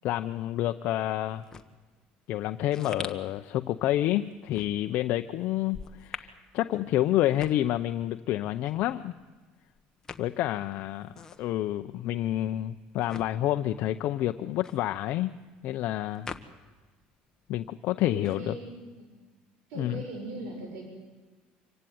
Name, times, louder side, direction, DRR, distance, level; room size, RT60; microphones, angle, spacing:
voice 1, 0.0-1.5 2.3-9.1 10.2-15.3 15.6-16.3 17.5-18.5 19.8-20.0, left 13 dB, 60° left, 8 dB, 0.7 m, -29 dB
sound 1, 1.3-17.0 17.3-18.9, left 5 dB, 20° left, 1.3 m, -46 dB
voice 2, 18.0-19.1 19.7-20.8, right 2 dB, 85° right, 2 dB, 6.5 m, -40 dB
25.5 x 16.5 x 9.4 m, 1.3 s
cardioid pair, 140°, 3 cm